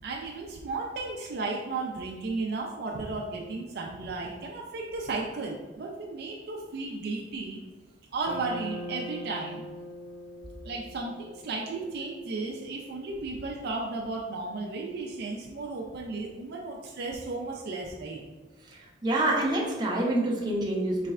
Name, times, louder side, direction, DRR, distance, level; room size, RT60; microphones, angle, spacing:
voice 1, 0.0-7.6 8.1-9.6 10.6-18.2, right 3 dB, 60° right, 0 dB, 0.4 m, -34 dB
sound 1, 8.2-12.6, equal, 30° left, 0.7 m, -42 dB
voice 2, 19.0-21.1, right 1 dB, 25° right, -3 dB, 0.7 m, -26 dB
4.1 x 3.2 x 2.4 m, 1.3 s
head